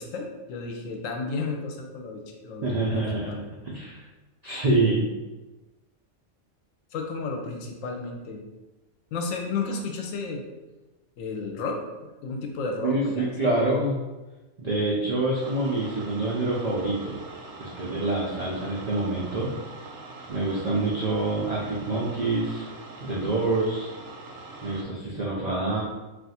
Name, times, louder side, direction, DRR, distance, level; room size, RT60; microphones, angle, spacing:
voice 1, 0.0-3.4 6.9-8.4 9.1-10.4 11.2-13.3, left 4 dB, 75° left, 2 dB, 0.9 m, -33 dB
voice 2, 2.6-4.0 4.4-5.0 12.8-14.0 14.6-17.1 17.6-19.5 20.3-22.7 23.0-23.9 24.6-25.8, right 2 dB, 85° right, -5 dB, 0.3 m, -26 dB
sound 1, 15.4-24.8, right 2 dB, 70° right, 0.8 m, -43 dB
2.5 x 2.4 x 4.0 m, 1.1 s
omnidirectional pair, 1.4 m